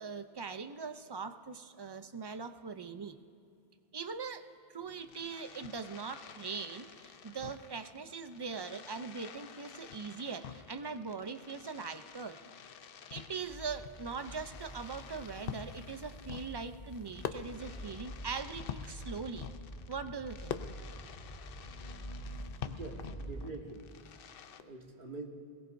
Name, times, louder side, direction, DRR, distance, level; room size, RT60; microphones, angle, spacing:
voice 1, 0.0-3.2 3.9-4.5 4.7-12.4 13.1-19.5 19.9-20.6, right 5 dB, 35° right, 9 dB, 0.4 m, -41 dB
Fireworks, 4.8-24.6, left 8 dB, 65° left, 0.8 m, -48 dB
sound 1, 13.4-23.5, equal, 30° left, 2.7 m, -47 dB
voice 2, 22.6-23.9 24.6-25.3, right 3 dB, 55° right, 1 dB, 1.6 m, -45 dB
22.0 x 18.5 x 2.6 m, 2.5 s
omnidirectional pair, 1.0 m